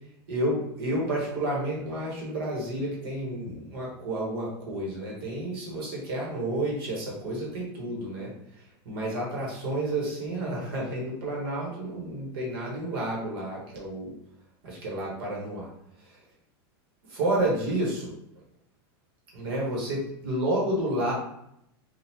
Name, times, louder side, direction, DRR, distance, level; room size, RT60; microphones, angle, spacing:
voice 1, 0.3-14.1 14.6-15.7 16.0-16.2 17.0-18.1 19.3-21.1, right 1 dB, 60° right, -3 dB, 1.4 m, -30 dB
3.9 x 2.5 x 2.9 m, 0.77 s
supercardioid pair, 175°, 14 cm